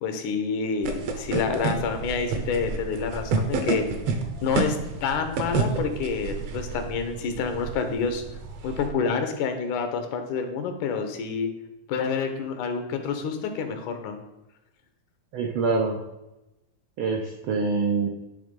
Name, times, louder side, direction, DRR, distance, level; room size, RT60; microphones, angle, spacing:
voice 1, 0.0-3.9 4.4-8.2 8.6-11.5 11.9-14.2, left 5 dB, 85° left, 7 dB, 2.4 m, -28 dB
sound 1, 0.8-8.9, right 4 dB, 70° right, 1.7 m, -30 dB
voice 2, 15.3-16.0 17.0-18.1, right 4 dB, 85° right, 1 dB, 1.1 m, -25 dB
10.5 x 3.6 x 5.2 m, 0.96 s
omnidirectional pair, 3.4 m